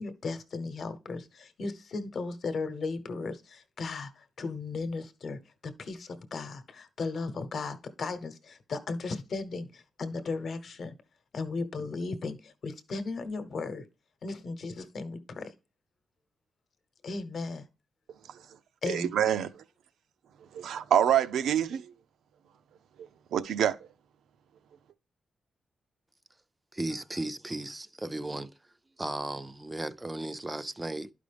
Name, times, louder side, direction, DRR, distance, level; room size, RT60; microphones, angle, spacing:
voice 1, 0.0-10.9 11.3-13.8 14.2-15.5 17.0-17.6 18.8-19.1, left 3 dB, 45° left, 0.9 m, -36 dB
voice 2, 18.8-19.6 20.5-21.9 23.3-23.8, right 9 dB, 90° right, 0.6 m, -26 dB
voice 3, 26.7-28.5 29.0-31.1, right 2 dB, 15° right, 0.4 m, -35 dB
11.5 x 5.1 x 3.4 m
wide cardioid pair, 165°, 0 cm